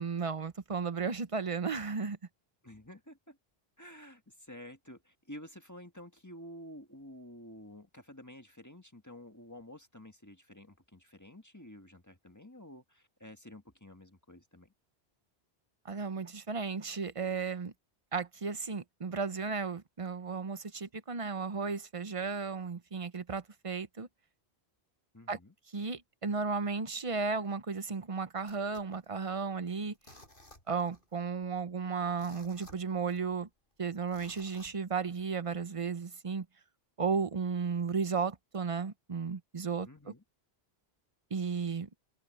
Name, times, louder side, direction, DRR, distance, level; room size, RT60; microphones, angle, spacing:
voice 1, 0.0-2.2 15.8-17.7 18.1-24.1 25.3-25.4 25.7-29.9 30.7-33.5 33.8-36.5 37.0-40.1 41.3-41.9, right 5 dB, 35° right, 0.8 m, -34 dB
voice 2, 2.6-3.4 3.8-14.7 25.1-25.5 39.8-40.2, left 1 dB, 15° left, 1.6 m, -51 dB
sound 1, 28.5-29.6 29.9-31.1 31.4-31.5 32.0-33.4 34.1-35.3 35.8-35.9, left 1 dB, 55° left, 6.7 m, -57 dB
omnidirectional pair, 1.1 m